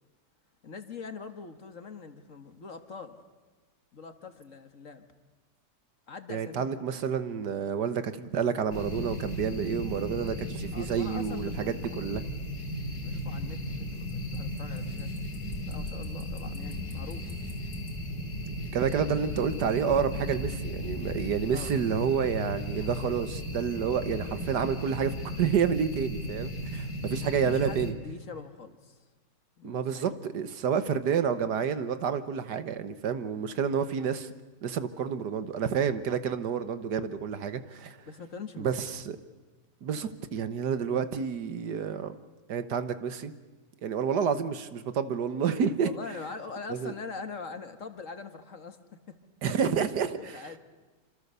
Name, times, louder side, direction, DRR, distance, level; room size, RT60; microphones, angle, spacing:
voice 1, 0.6-3.2 3.9-5.0 6.1-6.7 10.7-12.3 12.9-15.1 15.6-17.4 21.5-21.7 27.5-29.0 29.6-30.2 38.1-38.9 40.8-41.0 45.8-48.8 49.1-49.2 49.7-50.6, left 5 dB, 50° left, 8 dB, 1.9 m, -43 dB
voice 2, 6.3-12.2 18.7-27.9 29.6-34.3 34.6-38.0 38.6-39.2 39.8-42.2 42.5-43.3 43.8-45.9 46.7-46.9 49.4-50.5, right 7 dB, 70° right, 11 dB, 1.7 m, -29 dB
sound 1, 8.7-27.9, left 1 dB, 65° left, 3.4 m, -36 dB
26.5 x 26.5 x 6.9 m, 1.3 s
omnidirectional pair, 1.8 m